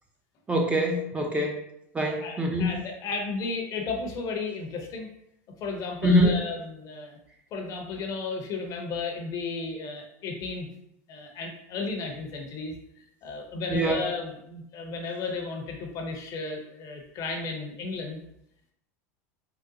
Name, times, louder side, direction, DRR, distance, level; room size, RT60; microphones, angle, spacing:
voice 1, 0.5-1.6 1.9-2.7 6.0-6.3 13.7-14.1, equal, 15° right, 1 dB, 0.5 m, -24 dB
voice 2, 2.0-5.1 5.6-7.2 7.5-10.7 11.1-12.7 13.2-18.2, left 4 dB, 45° left, 3 dB, 0.7 m, -34 dB
3.8 x 2.1 x 2.6 m, 0.77 s
hypercardioid pair, 105°, 8 cm